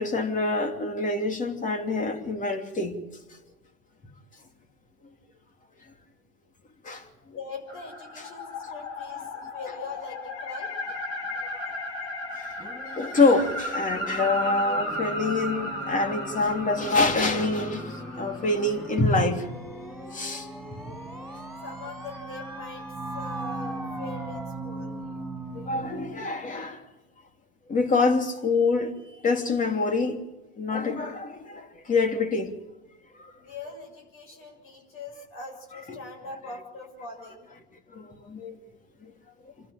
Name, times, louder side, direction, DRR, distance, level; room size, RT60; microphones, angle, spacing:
voice 1, 0.0-2.9 6.8-7.0 13.0-19.5 20.1-20.5 25.5-26.8 27.7-28.9 29.2-30.2 30.6-32.5 35.9-36.0 37.9-38.5, left 3 dB, 25° left, 3.1 m, -25 dB
voice 2, 7.3-10.7 21.6-25.0 33.4-37.5, left 3 dB, 45° left, 6.8 m, -42 dB
sound 1, 7.7-19.1, left 1 dB, 65° left, 7.1 m, -35 dB
sound 2, 12.6-26.2, right 1 dB, ahead, 5.4 m, -38 dB
27.5 x 12.5 x 9.0 m
hypercardioid pair, 95°, 30 cm